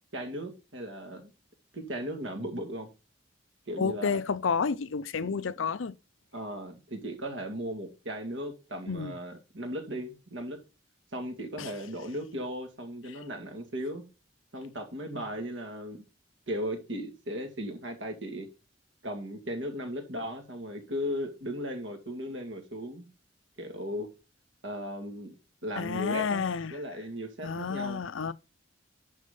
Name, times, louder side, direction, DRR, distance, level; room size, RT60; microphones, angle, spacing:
voice 1, 0.1-1.3 1.7-2.9 3.7-4.2 5.2-5.5 6.3-10.6 11.1-14.0 14.5-16.0 16.5-18.5 19.0-23.1 23.6-24.1 24.6-25.3 25.6-28.0, equal, 70° right, 2.3 m, -37 dB
voice 2, 3.8-5.9 8.9-9.1 11.6-11.7 25.8-26.8 27.4-28.3, left 5 dB, 85° left, 0.6 m, -30 dB
11.0 x 4.2 x 5.3 m
head